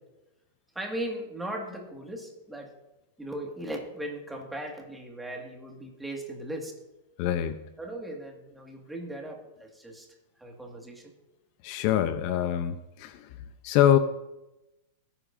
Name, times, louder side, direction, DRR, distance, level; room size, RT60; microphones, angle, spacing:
voice 1, 0.8-2.7 3.2-6.7 7.8-10.1 10.4-11.1, right 1 dB, 5° right, 1 dB, 1.8 m, -38 dB
voice 2, 7.2-7.6 11.6-13.2 13.6-14.0, left 11 dB, 45° left, 10 dB, 0.6 m, -24 dB
17.5 x 9.7 x 2.6 m, 0.96 s
supercardioid pair, 155°, 0 cm